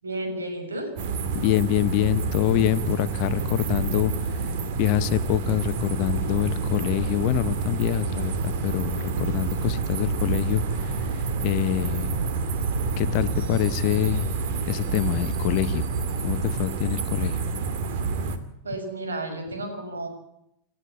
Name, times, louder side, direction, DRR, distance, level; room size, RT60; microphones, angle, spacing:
voice 1, 0.0-0.9 18.6-20.1, right 2 dB, 70° right, 5 dB, 6.6 m, -32 dB
sound 1, 1.0-18.4, right 4 dB, 50° right, 2.5 m, -28 dB
voice 2, 1.3-4.1 4.8-10.9 11.4-12.2 13.0-14.3 14.7-15.9 16.2-17.4, left 13 dB, 45° left, 14 dB, 1.0 m, -25 dB
29.5 x 13.0 x 8.7 m, 0.81 s
figure-of-eight pair, 90°, 0 cm